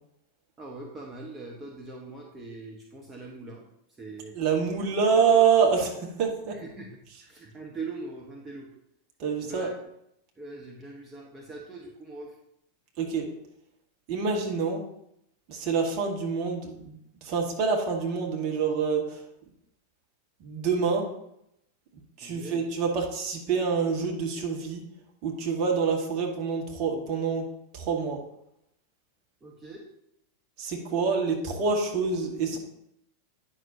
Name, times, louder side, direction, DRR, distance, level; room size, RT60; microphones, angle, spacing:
voice 1, 0.6-3.7 4.0-4.4 6.5-8.7 9.4-9.7 10.4-12.3 22.2-22.6 29.4-29.9, right 3 dB, 15° right, -1 dB, 1.3 m, -42 dB
voice 2, 4.3-6.6 9.2-9.7 13.0-13.3 14.1-14.8 15.5-19.2 20.4-21.1 22.2-24.8 25.2-27.4 27.7-28.2 30.6-32.6, right 5 dB, 40° right, 0 dB, 1.8 m, -26 dB
9.5 x 6.2 x 2.8 m, 0.76 s
figure-of-eight pair, 90°, 0 cm